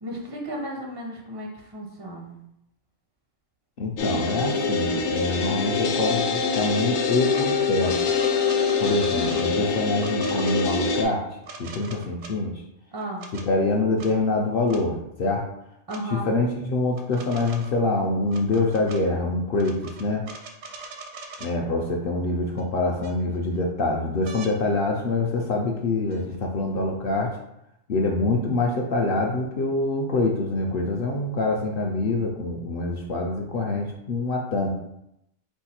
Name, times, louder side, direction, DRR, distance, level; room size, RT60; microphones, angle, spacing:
voice 1, 0.0-2.4 12.9-13.3 15.9-16.3, equal, 35° right, -1 dB, 0.3 m, -34 dB
voice 2, 3.8-8.0 8.8-11.3 11.6-12.6 13.5-15.5 16.1-20.2 21.4-27.4 27.9-34.7, left 2 dB, 60° left, 0 dB, 0.6 m, -25 dB
sound 1, 4.0-11.0, left 5 dB, 90° left, 1.0 m, -24 dB
sound 2, 7.3-7.5 7.8-9.5 10.0-10.7 11.4-12.3 13.0-13.5 14.0-14.1 14.7-14.8 15.9-16.0 16.9-17.8 18.3-19.0 19.6-21.5 22.6-22.7 23.0-23.6 24.3-24.5 26.1-26.2, right 4 dB, 80° right, 1.0 m, -41 dB
4.6 x 2.3 x 4.2 m, 0.81 s
omnidirectional pair, 1.4 m